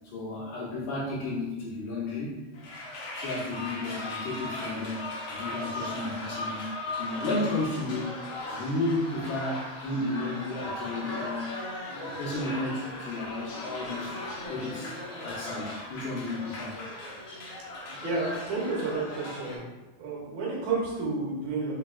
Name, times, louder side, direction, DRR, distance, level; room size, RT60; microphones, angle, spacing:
voice 1, 0.1-2.4 3.1-6.7 7.0-11.6 12.0-14.2 14.5-15.0 15.2-16.8, left 2 dB, 85° left, -6 dB, 2.6 m, -33 dB
sound 1, 2.5-19.6, left 2 dB, 70° left, 1.2 m, -38 dB
voice 2, 17.8-19.6 20.0-21.7, right 3 dB, 70° right, -4 dB, 2.4 m, -31 dB
5.9 x 3.3 x 2.3 m, 1.1 s
omnidirectional pair, 3.4 m